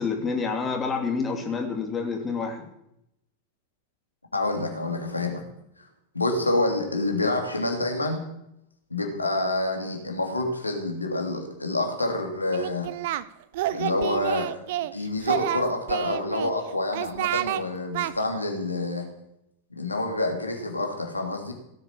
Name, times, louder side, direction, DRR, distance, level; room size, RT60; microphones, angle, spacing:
voice 1, 0.0-2.7, left 5 dB, 20° left, 3 dB, 3.0 m, -28 dB
voice 2, 4.3-5.4 6.1-8.2 8.9-12.9 13.7-14.5 14.9-19.1 19.7-21.5, left 2 dB, 80° left, 2 dB, 2.9 m, -27 dB
Singing, 12.5-13.2 13.5-14.9 15.2-16.5 16.9-17.6 17.9-18.1, right 14 dB, 50° right, 0.7 m, -28 dB
17.0 x 9.8 x 7.2 m, 0.80 s
figure-of-eight pair, 90°, 0 cm